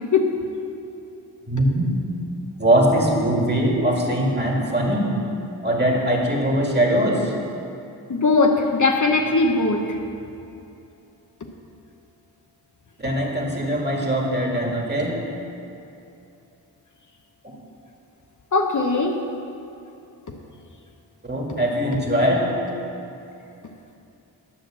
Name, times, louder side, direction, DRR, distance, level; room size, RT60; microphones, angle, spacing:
voice 1, 1.5-1.9 2.6-5.1 5.6-7.3 13.0-15.2 21.2-22.5, right 1 dB, 25° right, -1 dB, 2.0 m, -21 dB
voice 2, 8.1-9.8 18.5-19.2, left 3 dB, 45° left, 2 dB, 0.9 m, -19 dB
10.5 x 5.8 x 7.5 m, 2.7 s
wide cardioid pair, 75°, 41 cm